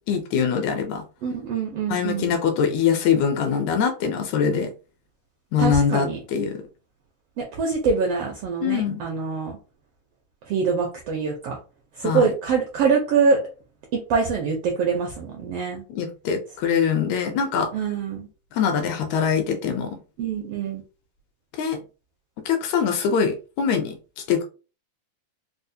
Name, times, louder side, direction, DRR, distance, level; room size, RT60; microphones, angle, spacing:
voice 1, 0.1-1.0 1.9-4.7 5.5-6.6 8.6-9.0 12.0-12.3 15.9-17.9 18.5-20.0 21.5-21.8 22.5-24.0 24.3-24.4, left 7 dB, 80° left, 6 dB, 1.8 m, -23 dB
voice 2, 1.2-2.4 5.6-6.2 7.4-9.5 10.5-11.6 12.0-13.4 14.1-15.8 17.7-18.3 20.2-20.8, right 5 dB, 80° right, 1 dB, 1.4 m, -24 dB
4.7 x 2.0 x 2.6 m, 0.34 s
omnidirectional pair, 3.5 m